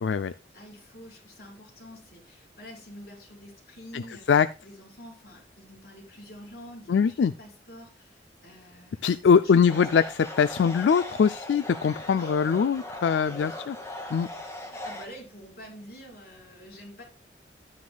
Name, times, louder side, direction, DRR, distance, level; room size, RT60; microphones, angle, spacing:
voice 1, 0.0-0.3 3.9-4.0 4.3-4.5 6.9-7.3 9.0-10.0 10.4-13.8 14.1-14.3, left 6 dB, 85° left, 14 dB, 0.4 m, -22 dB
voice 2, 0.5-9.0 9.4-9.9 12.1-12.4 14.6-17.0, equal, 60° left, -3 dB, 4.8 m, -47 dB
sound 1, 9.7-15.1, left 1 dB, 15° left, 1.9 m, -39 dB
12.0 x 9.4 x 2.3 m, 0.31 s
head